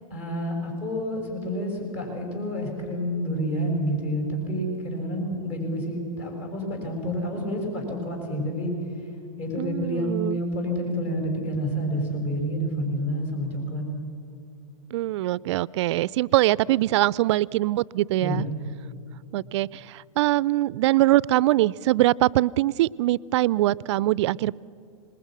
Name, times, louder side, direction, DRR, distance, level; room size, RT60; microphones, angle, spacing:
voice 1, 0.1-9.1 9.4-13.8 18.1-18.5, equal, 45° left, 2 dB, 6.3 m, -29 dB
voice 2, 9.6-10.4 14.9-18.5 19.3-24.6, right 16 dB, 55° right, 22 dB, 0.4 m, -23 dB
26.5 x 20.5 x 6.2 m, 2.5 s
hypercardioid pair, 110°, 18 cm